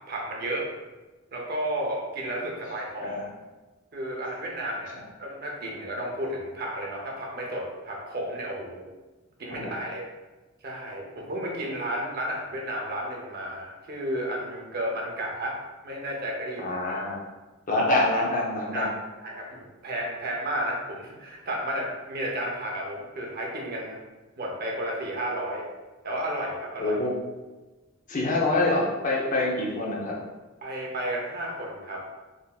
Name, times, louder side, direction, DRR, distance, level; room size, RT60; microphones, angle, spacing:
voice 1, 0.1-0.7 1.3-3.2 3.9-4.9 5.2-8.9 9.4-10.0 10.6-15.6 15.8-16.8 18.7-18.9 19.2-24.0 24.4-25.6 26.0-27.0 30.6-32.0, right 1 dB, 50° right, -1 dB, 0.6 m, -32 dB
voice 2, 16.6-17.2 17.7-18.9 26.8-27.1 28.1-30.1, left 2 dB, 40° left, -3 dB, 0.6 m, -25 dB
3.7 x 2.6 x 2.4 m, 1.2 s
head